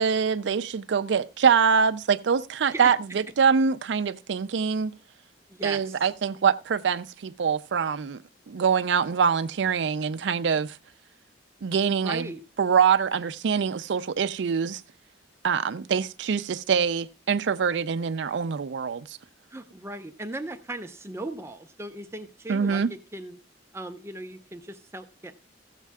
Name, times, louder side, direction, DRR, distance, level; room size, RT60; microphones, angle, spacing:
voice 1, 0.0-3.0 3.4-4.9 5.6-8.2 8.5-10.8 11.6-12.3 12.6-14.8 15.4-19.0 22.5-22.9, right 6 dB, 70° right, 0.4 m, -24 dB
voice 2, 5.5-6.0 11.9-12.4 19.5-23.4 23.7-25.3, right 2 dB, 15° right, 0.6 m, -38 dB
15.0 x 7.4 x 3.5 m
head